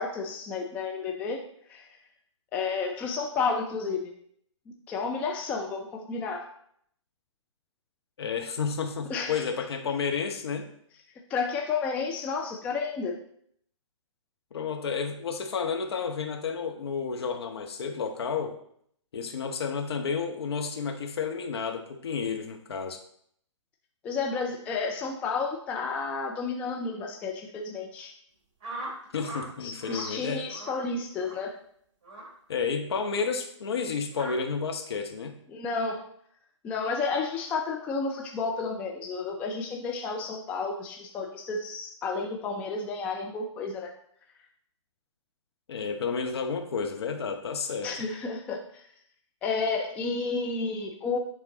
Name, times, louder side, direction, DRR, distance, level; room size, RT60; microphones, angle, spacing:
voice 1, 0.0-1.4 1.7-1.9 2.5-4.0 4.9-6.5 9.1-9.4 11.3-13.1 24.0-28.1 29.6-31.5 35.5-36.0 36.6-43.9 47.8-48.8 49.4-51.2, left 4 dB, 10° left, 1 dB, 0.3 m, -31 dB
voice 2, 8.2-10.7 14.5-18.6 19.1-23.0 29.1-30.5 32.5-35.4 45.7-47.9, left 5 dB, 55° left, 4 dB, 1.0 m, -31 dB
sound 1, 28.6-29.5 29.8-30.1 30.5-30.8 31.2-31.4 32.0-32.3 33.0-33.2 34.1-34.4, right 2 dB, 30° right, 2.5 m, -40 dB
9.8 x 3.6 x 2.9 m, 0.67 s
figure-of-eight pair, 130°, 16 cm